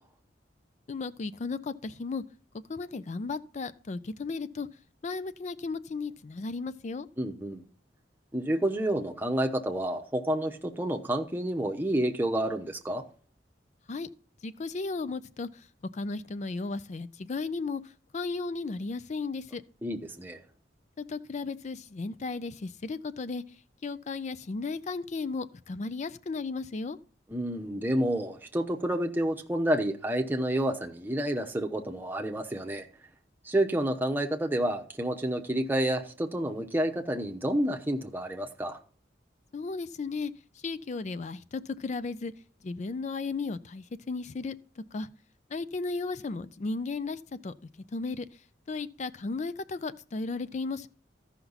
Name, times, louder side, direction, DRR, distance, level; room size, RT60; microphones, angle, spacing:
voice 1, 0.9-2.2 2.7-4.7 5.0-7.1 13.9-14.1 14.4-15.7 15.9-19.6 21.0-23.4 23.8-27.0 39.5-42.3 42.6-45.1 45.5-47.5 47.9-50.9, left 3 dB, 40° left, 0.4 m, -35 dB
voice 2, 7.2-7.6 8.3-13.0 19.8-20.4 27.3-32.9 33.4-38.8, right 1 dB, 10° right, 0.9 m, -29 dB
14.0 x 5.8 x 4.0 m
head